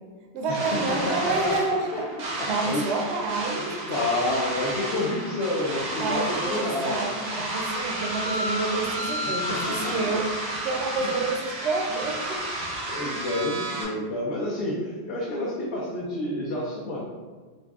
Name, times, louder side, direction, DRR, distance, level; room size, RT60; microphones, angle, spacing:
voice 1, 0.3-4.0 6.0-12.7, right 3 dB, 80° right, 1 dB, 0.9 m, -29 dB
sound 1, 0.5-13.8, right 1 dB, 50° right, 0.6 m, -31 dB
voice 2, 0.9-1.5 1.9-2.0 2.4-2.8 3.9-7.0 9.2-9.4 10.0-10.1 11.0-11.1 12.9-17.0, left 1 dB, 85° left, -4 dB, 0.9 m, -29 dB
3.9 x 2.2 x 2.3 m, 1.5 s
omnidirectional pair, 1.1 m